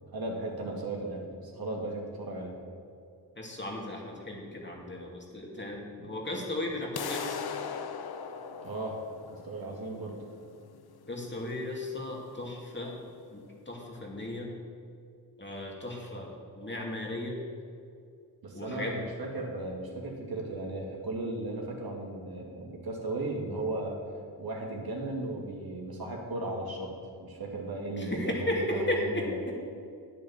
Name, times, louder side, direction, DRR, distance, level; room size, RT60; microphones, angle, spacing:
voice 1, 0.1-2.5 6.0-6.1 8.6-9.0 9.3-10.2 18.4-24.0 24.4-26.9 27.2-29.4, right 2 dB, 60° right, 0 dB, 2.5 m, -36 dB
voice 2, 3.4-7.4 11.1-12.9 13.3-14.5 15.4-17.4 18.5-19.0 28.0-29.6, left 1 dB, 25° left, -1 dB, 2.6 m, -35 dB
sound 1, 7.0-12.9, left 7 dB, 65° left, 0.8 m, -40 dB
9.0 x 8.6 x 7.3 m, 2.3 s
cardioid pair, 55°, 41 cm